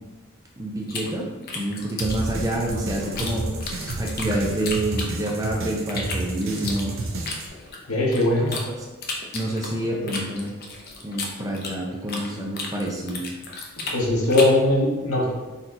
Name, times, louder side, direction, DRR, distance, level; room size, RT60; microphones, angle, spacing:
voice 1, 0.6-1.3 1.5-7.0 9.3-10.5 11.0-13.2, right 1 dB, 15° right, -1 dB, 0.5 m, -28 dB
sound 1, 0.9-3.3 3.6-5.5 5.9-8.6 9.0-12.3 12.5-14.6, left 3 dB, 45° left, 0.6 m, -33 dB
sound 2, 2.0-7.5, right 2 dB, 60° right, 0.6 m, -31 dB
voice 2, 7.9-8.6 9.8-10.1 13.9-15.3, left 1 dB, 75° left, -4 dB, 1.1 m, -20 dB
4.2 x 2.9 x 3.9 m, 1.2 s
head